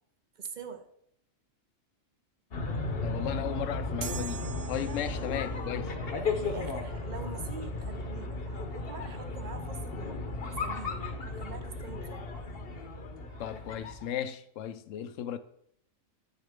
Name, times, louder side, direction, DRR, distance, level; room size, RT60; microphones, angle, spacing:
voice 1, 0.4-0.9 4.8-5.0 6.3-10.2 10.6-12.3, right 5 dB, 45° right, 0.7 m, -44 dB
sound 1, 2.5-14.0, left 3 dB, 50° left, 1.0 m, -35 dB
voice 2, 3.0-5.9 13.4-15.4, left 10 dB, 75° left, 0.9 m, -36 dB
sound 2, 4.0-5.5, right 6 dB, 90° right, 1.3 m, -41 dB
9.1 x 6.4 x 3.5 m
omnidirectional pair, 1.4 m